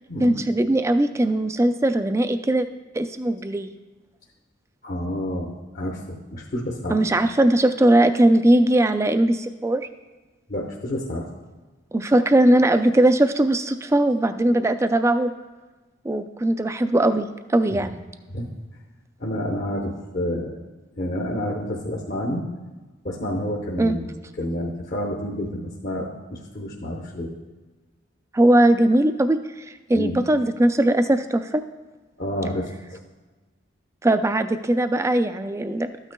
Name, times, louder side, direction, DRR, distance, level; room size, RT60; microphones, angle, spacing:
voice 1, 0.2-2.7 2.9-3.7 6.9-9.9 11.9-15.3 16.0-18.0 23.8-24.0 28.3-29.4 29.7-31.6 34.0-35.9, right 1 dB, 15° right, 10 dB, 0.3 m, -19 dB
voice 2, 4.8-7.0 10.5-11.3 18.3-18.5 19.2-20.6 21.0-22.4 23.0-24.1 24.4-27.3 29.9-30.2 32.2-33.0, left 1 dB, 50° left, -1 dB, 0.9 m, -29 dB
12.5 x 9.1 x 2.2 m, 1.3 s
head